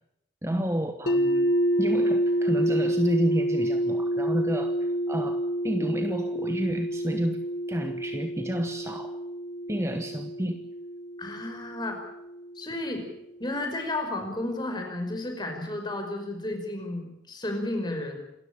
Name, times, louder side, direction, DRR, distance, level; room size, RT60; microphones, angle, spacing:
voice 1, 0.4-1.5 1.8-7.4 7.7-9.2 9.7-10.6, equal, 15° right, 7 dB, 1.2 m, -30 dB
sound 1, 1.1-13.0, right 1 dB, 60° left, 1.7 m, -28 dB
voice 2, 11.2-12.0 12.6-13.1 13.4-18.2, left 1 dB, 25° left, 4 dB, 5.2 m, -32 dB
27.5 x 13.5 x 8.9 m, 0.84 s
head